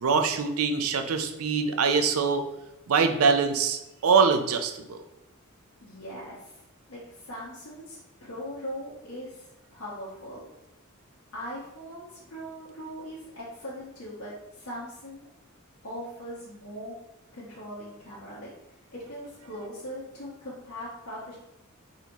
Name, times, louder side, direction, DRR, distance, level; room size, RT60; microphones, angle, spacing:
voice 1, 0.0-2.4 2.9-5.0, right 5 dB, 75° right, 7 dB, 0.5 m, -24 dB
voice 2, 5.8-6.6 6.9-10.5 11.3-15.3 15.8-16.9 17.3-18.5 18.9-21.3, equal, 85° left, -8 dB, 1.2 m, -40 dB
4.1 x 4.0 x 3.0 m, 0.92 s
head